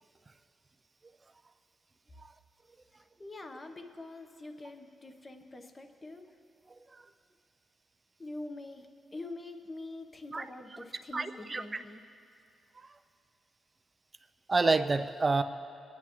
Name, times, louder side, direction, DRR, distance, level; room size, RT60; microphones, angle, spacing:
voice 1, 2.9-6.3 8.2-12.0, left 2 dB, 25° left, 6 dB, 0.9 m, -45 dB
voice 2, 11.1-11.6 14.5-15.4, right 3 dB, 25° right, 9 dB, 0.5 m, -27 dB
24.0 x 10.5 x 3.0 m, 2.5 s
cardioid pair, 125°, 0 cm